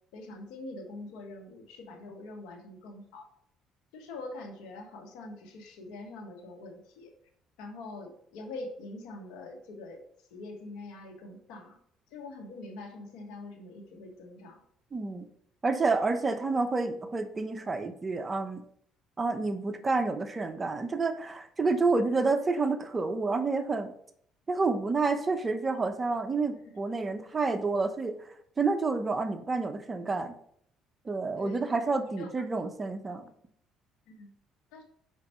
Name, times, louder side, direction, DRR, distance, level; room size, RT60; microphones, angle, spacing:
voice 1, 0.1-3.3 3.9-7.1 7.6-10.0 10.3-11.8 12.1-14.6 26.6-26.7 31.4-31.7 32.2-32.3 34.1-34.3 34.7-34.8, left 2 dB, 85° left, 3 dB, 1.4 m, -44 dB
voice 2, 14.9-15.3 15.6-18.6 19.2-23.9 24.5-28.3 28.6-30.3 31.0-33.3, right 3 dB, 25° right, 8 dB, 0.8 m, -29 dB
5.6 x 5.1 x 4.5 m, 0.66 s
supercardioid pair, 85°, 0 cm